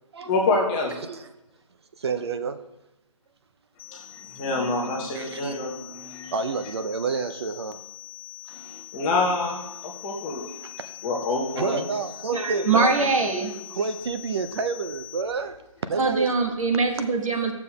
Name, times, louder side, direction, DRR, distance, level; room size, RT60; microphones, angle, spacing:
voice 1, 0.3-0.9 3.9-4.0 4.4-6.3 8.5-10.7 11.0-11.9, left 3 dB, 15° left, 0.7 m, -27 dB
voice 2, 2.0-2.7 5.1-5.5 6.3-7.8 10.8-10.9 11.6-12.9 13.7-15.6 15.8-16.3 17.3-17.4, right 5 dB, 50° right, 0.5 m, -29 dB
sound 1, 3.8-15.2, left 16 dB, 35° left, 1.7 m, -43 dB
voice 3, 12.3-13.5 15.9-17.5, right 3 dB, 70° right, 1.3 m, -23 dB
13.5 x 7.1 x 2.3 m
hypercardioid pair, 160°, 18 cm